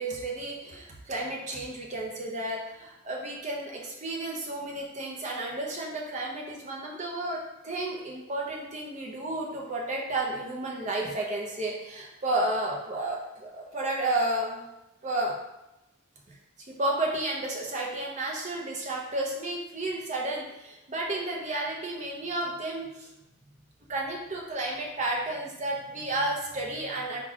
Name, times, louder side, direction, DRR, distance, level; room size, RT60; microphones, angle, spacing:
voice 1, 0.0-14.6 15.0-15.4 16.3-16.4 16.7-23.1 23.9-27.2, right 2 dB, 35° right, -1 dB, 0.8 m, -32 dB
3.9 x 2.4 x 4.6 m, 0.91 s
head